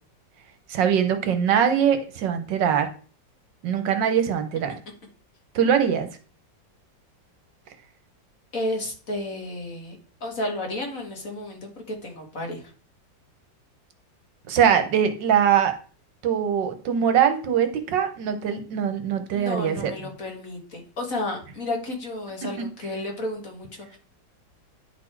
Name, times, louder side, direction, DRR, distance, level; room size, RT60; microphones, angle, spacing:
voice 1, 0.7-2.9 3.6-4.7 5.5-6.1 14.5-15.7 16.2-19.9, right 8 dB, 75° right, 9 dB, 1.6 m, -22 dB
voice 2, 8.5-11.7 12.0-12.6 19.3-24.0, left 1 dB, 45° left, 2 dB, 2.2 m, -32 dB
10.0 x 4.2 x 4.5 m, 0.40 s
omnidirectional pair, 2.0 m